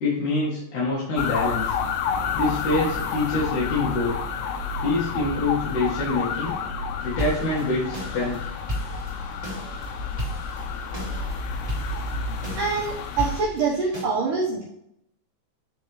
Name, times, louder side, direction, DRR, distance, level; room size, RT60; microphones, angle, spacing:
voice 1, 0.0-1.7 2.3-4.1 4.8-6.6 7.0-8.5, left 2 dB, 55° left, -7 dB, 2.4 m, -25 dB
sound 1, 1.2-13.4, left 5 dB, 85° left, 2.4 m, -30 dB
sound 2, 7.0-14.0, equal, 15° right, 1.6 m, -35 dB
voice 2, 12.5-14.6, right 4 dB, 85° right, -5 dB, 1.8 m, -25 dB
9.0 x 4.6 x 3.1 m, 0.78 s
omnidirectional pair, 5.3 m